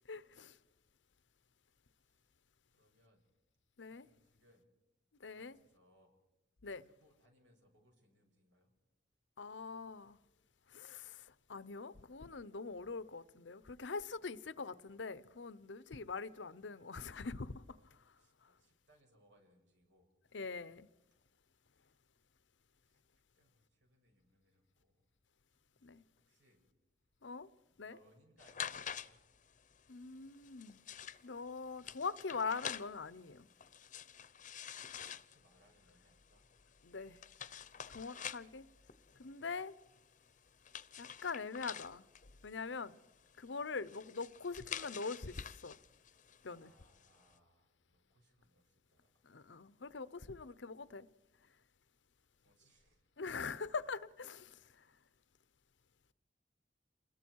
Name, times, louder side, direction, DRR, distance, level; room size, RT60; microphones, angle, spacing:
voice 1, 0.1-0.6 3.8-4.1 5.2-5.6 6.6-6.8 9.4-10.2 10.7-18.0 20.3-20.9 25.8-26.0 27.2-27.5 27.8-28.0 29.9-30.8 31.2-33.5 36.8-37.2 37.9-38.7 39.2-39.7 41.0-42.1 42.4-43.0 43.4-45.8 46.4-46.7 49.2-51.1 53.2-54.6, left 4 dB, 90° left, 0.8 m, -43 dB
voice 2, 2.7-3.2 3.9-4.7 5.2-6.1 6.8-8.7 14.1-14.3 17.5-17.9 18.2-20.1 20.5-20.7 22.8-23.0 23.3-25.0 25.6-26.6 27.7-28.7 29.0-29.2 34.9-36.4 46.4-49.3 52.4-53.0, equal, 85° right, 6.7 m, -71 dB
sound 1, 28.4-47.3, left 8 dB, 45° left, 0.8 m, -49 dB
28.5 x 21.5 x 4.7 m
head